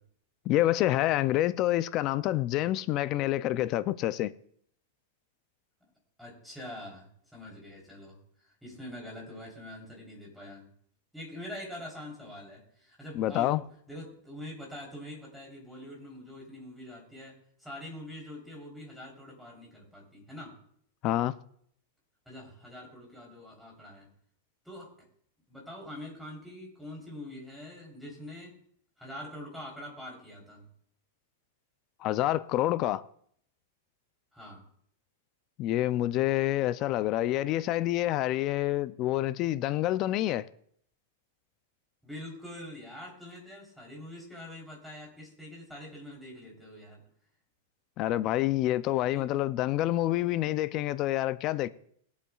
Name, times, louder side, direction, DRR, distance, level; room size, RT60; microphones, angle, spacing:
voice 1, 0.5-4.3 13.2-13.6 21.0-21.3 32.0-33.0 35.6-40.5 48.0-51.7, left 14 dB, 35° left, 0.4 m, -27 dB
voice 2, 6.2-10.7 11.1-13.6 13.9-20.5 22.3-24.1 24.7-24.9 25.5-28.5 29.0-30.6 34.3-34.6 42.0-47.0 49.1-49.3, left 1 dB, ahead, 3.5 m, -44 dB
20.5 x 8.2 x 2.4 m
supercardioid pair, 150°, 0 cm